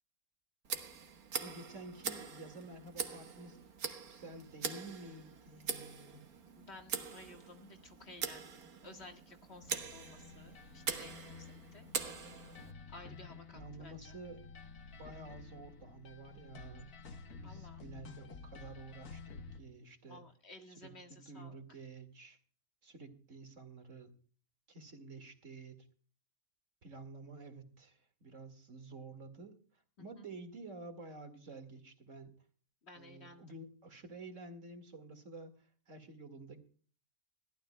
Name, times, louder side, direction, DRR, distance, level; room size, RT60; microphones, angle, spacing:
Tick, 0.6-12.7, right 6 dB, 80° right, 1.9 m, -43 dB
voice 1, 1.4-3.6 3.8-6.3 13.5-14.4 14.9-16.9 17.4-20.2 20.8-22.4 22.8-24.1 24.7-25.8 26.8-29.6 30.0-32.3 32.9-36.6, right 3 dB, 55° right, 7 dB, 2.3 m, -50 dB
voice 2, 6.6-11.9 12.9-14.1 17.4-17.8 20.1-21.6 30.1-30.2 32.8-33.6, left 2 dB, 45° left, 5 dB, 1.9 m, -55 dB
sound 1, 9.6-19.6, left 4 dB, 90° left, 1.8 m, -52 dB
21.5 x 15.0 x 2.2 m, 0.41 s
omnidirectional pair, 1.5 m